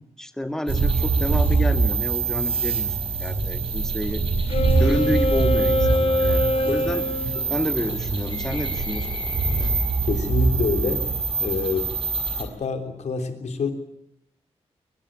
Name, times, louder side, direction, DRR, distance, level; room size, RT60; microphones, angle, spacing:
voice 1, 0.2-4.2 4.8-7.0 7.5-9.1, left 1 dB, 5° left, 8 dB, 1.8 m, -29 dB
sound 1, 0.7-12.4, right 4 dB, 55° right, 4.9 m, -24 dB
Wind instrument woodwind instrument, 4.5-7.4, left 1 dB, 65° left, 3.3 m, -23 dB
sound 2, 4.8-10.2, left 3 dB, 45° left, 4.1 m, -41 dB
voice 2, 10.0-11.1 11.4-11.9 12.4-13.7, left 4 dB, 90° left, 7 dB, 3.4 m, -27 dB
22.0 x 21.5 x 8.8 m, 0.81 s
wide cardioid pair, 170°, 11 cm